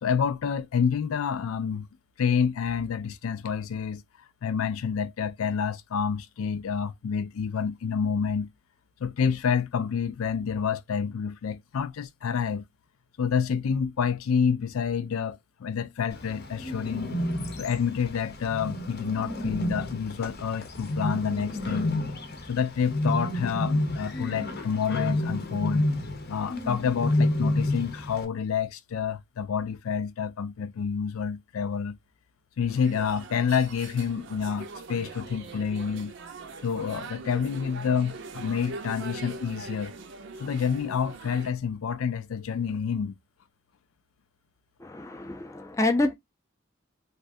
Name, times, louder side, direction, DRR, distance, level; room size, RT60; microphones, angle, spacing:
voice 1, 0.0-1.9 2.2-4.0 4.4-8.5 9.0-12.6 13.2-17.1 17.6-21.9 22.5-25.8 26.3-32.0 32.6-36.1 36.6-39.9 40.4-43.1, left 6 dB, 85° left, 0.4 m, -28 dB
Bird, 16.1-28.3, left 1 dB, 50° left, 0.8 m, -30 dB
sound 1, 32.7-41.5, right 4 dB, 60° right, 0.6 m, -42 dB
voice 2, 44.8-46.1, left 2 dB, 15° left, 0.5 m, -27 dB
3.2 x 2.4 x 2.5 m
head